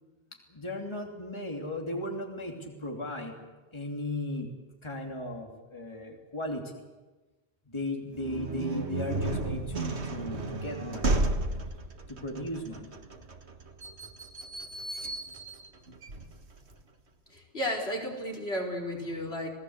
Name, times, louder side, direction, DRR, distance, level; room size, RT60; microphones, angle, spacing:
voice 1, 0.5-4.5 4.8-6.6 7.7-11.2 12.1-13.0, left 1 dB, 25° left, 1 dB, 3.0 m, -36 dB
sound 1, 8.1-16.8, right 2 dB, 80° right, 2.0 m, -33 dB
voice 2, 17.3-19.5, equal, 70° left, 0 dB, 4.6 m, -33 dB
28.5 x 18.5 x 8.1 m, 1.2 s
omnidirectional pair, 1.1 m